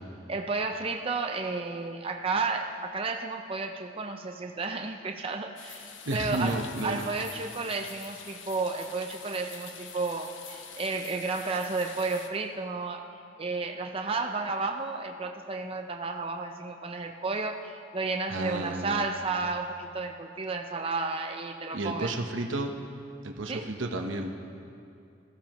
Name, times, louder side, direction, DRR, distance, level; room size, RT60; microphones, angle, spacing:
voice 1, 0.3-13.1 13.4-22.1 23.5-23.7, right 3 dB, 30° right, 3 dB, 0.6 m, -32 dB
sound 1, 5.6-12.3, left 6 dB, 80° left, 1.0 m, -45 dB
voice 2, 6.0-7.1 18.3-19.0 21.7-22.8 23.2-24.3, right 2 dB, 90° right, 3 dB, 1.0 m, -32 dB
20.5 x 14.5 x 3.1 m, 2.5 s
head